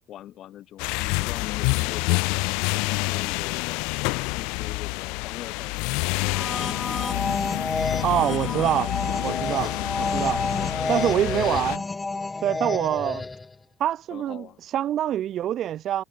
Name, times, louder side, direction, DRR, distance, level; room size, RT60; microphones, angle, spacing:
voice 1, 0.1-7.3 8.1-8.9 9.2-9.9 10.4-11.7 14.1-14.6, left 12 dB, 40° left, 6.3 m, -42 dB
sound 1, 0.8-11.8, left 31 dB, 80° left, 2.0 m, -28 dB
sound 2, 6.2-13.5, left 3 dB, 10° left, 1.4 m, -30 dB
voice 2, 8.0-8.9 9.2-9.7 10.1-10.4 10.9-11.8 12.4-13.3 13.8-16.0, right 11 dB, 40° right, 1.0 m, -25 dB
cardioid pair, 175°, 0 cm